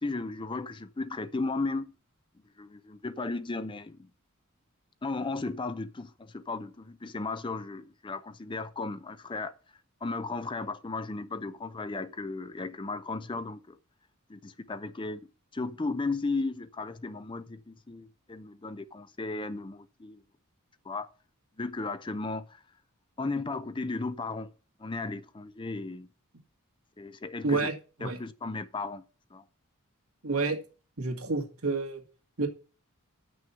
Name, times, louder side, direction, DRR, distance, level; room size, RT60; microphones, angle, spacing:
voice 1, 0.0-1.9 2.6-4.1 5.0-9.5 10.0-13.8 14.3-15.2 15.5-20.2 20.9-21.1 21.6-22.6 23.2-24.5 24.8-26.1 27.0-27.7 28.0-29.0 29.3-29.4, left 3 dB, 20° left, 0.5 m, -35 dB
voice 2, 27.4-27.7 28.0-28.2 30.2-30.6 31.0-32.0 32.4-32.5, right 3 dB, 80° right, 2.2 m, -29 dB
9.3 x 6.2 x 5.7 m
head